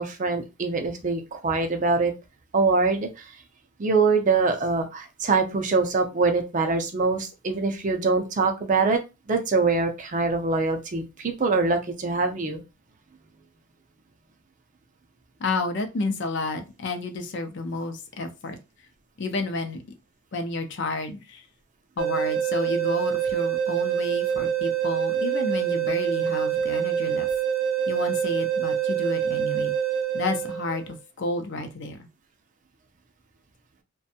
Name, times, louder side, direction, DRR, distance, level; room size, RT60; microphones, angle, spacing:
voice 1, 0.0-2.1 2.5-3.4 3.8-9.0 9.3-12.6, right 4 dB, 35° right, 5 dB, 0.4 m, -24 dB
voice 2, 15.4-18.6 19.2-19.8 20.3-21.4 22.0-27.2 27.9-29.7 30.1-32.1, left 2 dB, 55° left, 6 dB, 0.5 m, -31 dB
sound 1, 22.0-30.9, right 8 dB, 65° right, 0.7 m, -26 dB
2.5 x 2.2 x 2.6 m, 0.26 s
head